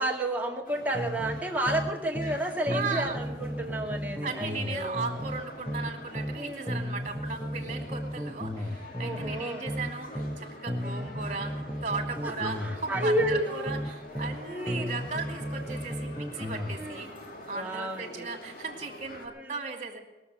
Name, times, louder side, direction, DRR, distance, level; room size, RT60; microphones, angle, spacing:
voice 1, 0.0-5.0 6.3-6.8 9.0-9.6 10.8-11.1 12.2-13.7 14.5-14.9 16.8-17.1 17.5-18.3 19.3-19.6, right 1 dB, 10° right, -1 dB, 2.1 m, -31 dB
sound 1, 0.6-19.3, left 1 dB, 50° left, 2.2 m, -47 dB
sound 2, 0.9-2.4 2.7-6.4 6.7-10.4 10.7-14.4 14.7-16.8, equal, 10° left, 1.1 m, -34 dB
voice 2, 2.7-3.2 4.2-17.1 17.5-20.0, right 4 dB, 40° right, 4 dB, 2.5 m, -37 dB
21.0 x 7.2 x 8.2 m, 1.1 s
head